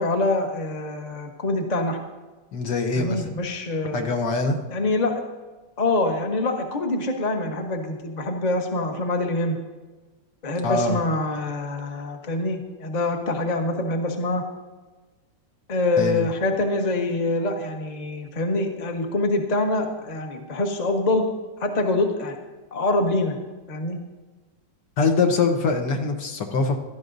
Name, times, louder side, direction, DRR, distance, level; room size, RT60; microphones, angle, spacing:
voice 1, 0.0-2.0 2.9-4.1 4.7-5.2 5.8-9.6 10.4-14.4 15.7-21.3 21.6-22.3 22.7-23.4 23.7-24.0, left 2 dB, 30° left, 3 dB, 0.9 m, -25 dB
voice 2, 2.5-3.3 3.9-4.6 10.6-11.0 16.0-16.3 25.0-26.8, left 4 dB, 65° left, 4 dB, 1.6 m, -23 dB
16.0 x 12.5 x 2.6 m, 1.3 s
omnidirectional pair, 2.1 m